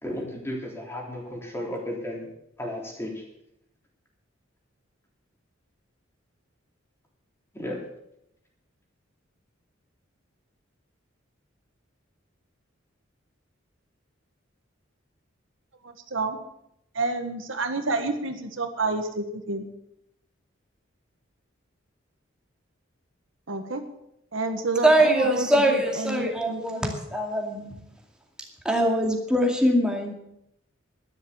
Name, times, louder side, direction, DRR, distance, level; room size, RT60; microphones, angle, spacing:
voice 1, 0.0-2.3 2.6-3.2 7.5-7.8, left 1 dB, 15° left, -1 dB, 3.6 m, -34 dB
voice 2, 15.8-16.4 16.9-19.6 23.5-23.8 24.3-26.8, right 3 dB, 75° right, 7 dB, 1.5 m, -29 dB
voice 3, 24.8-27.7 28.6-30.1, right 1 dB, 5° right, 1 dB, 2.3 m, -22 dB
12.0 x 11.0 x 6.9 m, 0.79 s
head